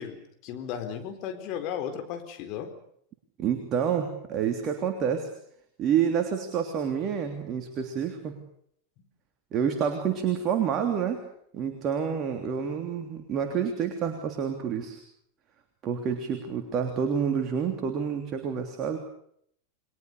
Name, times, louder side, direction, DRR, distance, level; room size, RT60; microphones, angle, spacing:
voice 1, 0.0-2.7 9.0-9.1, left 8 dB, 40° left, 6 dB, 4.3 m, -35 dB
voice 2, 3.4-5.3 5.8-8.3 9.5-11.2 11.5-15.0 15.8-19.0, right 7 dB, 30° right, 5 dB, 3.3 m, -28 dB
29.5 x 22.5 x 6.9 m, 0.69 s
figure-of-eight pair, 90°, 0 cm